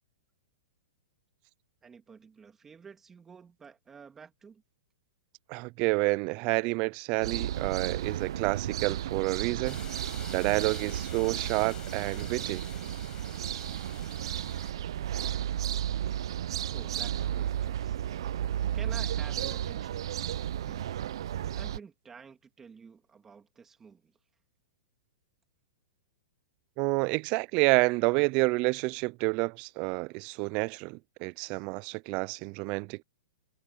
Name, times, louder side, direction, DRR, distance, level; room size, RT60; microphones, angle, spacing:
voice 1, 1.8-4.6 16.7-18.0 18.7-20.1 20.7-24.2, right 6 dB, 10° right, 3.0 m, -50 dB
voice 2, 5.5-9.8 10.3-12.6 26.8-33.0, right 28 dB, 35° right, 0.3 m, -29 dB
sound 1, 7.2-21.8, right 11 dB, 65° right, 0.6 m, -33 dB
sound 2, 9.6-14.7, left 10 dB, 20° left, 5.5 m, -49 dB
hypercardioid pair, 155°, 3 cm